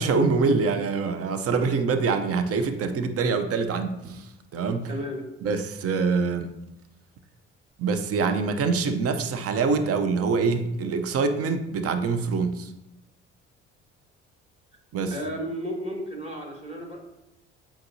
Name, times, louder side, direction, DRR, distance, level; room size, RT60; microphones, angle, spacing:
voice 1, 0.0-4.9 5.4-6.5 7.8-12.7 14.9-15.2, right 4 dB, 45° right, 8 dB, 0.8 m, -25 dB
voice 2, 4.9-5.3 15.1-17.0, equal, 20° right, -1 dB, 2.0 m, -33 dB
7.8 x 5.1 x 2.8 m, 0.89 s
figure-of-eight pair, 50°, 34 cm